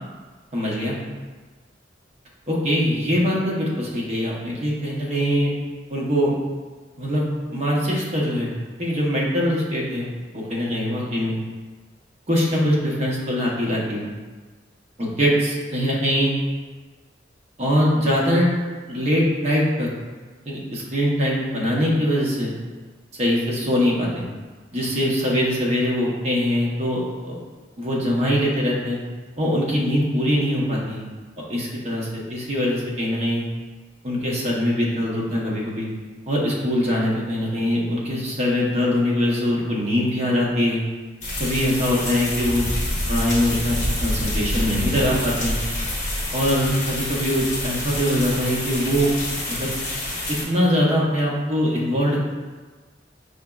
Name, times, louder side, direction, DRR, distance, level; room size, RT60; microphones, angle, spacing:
voice 1, 0.5-1.0 2.5-5.5 5.9-6.3 7.0-7.2 7.5-8.5 8.8-11.4 12.3-14.1 15.0-16.3 17.6-18.5 18.9-19.9 20.4-22.5 23.2-24.3 24.7-27.4 27.8-29.0 29.4-31.0 31.5-33.4 34.0-35.9 36.3-40.8 41.4-42.7 43.1-45.6 46.3-49.1 49.5-49.7 50.3-52.2, equal, 35° right, -4 dB, 0.7 m, -22 dB
sound 1, 41.2-50.4, left 1 dB, 45° left, 1.1 m, -27 dB
4.9 x 2.9 x 2.3 m, 1.4 s
head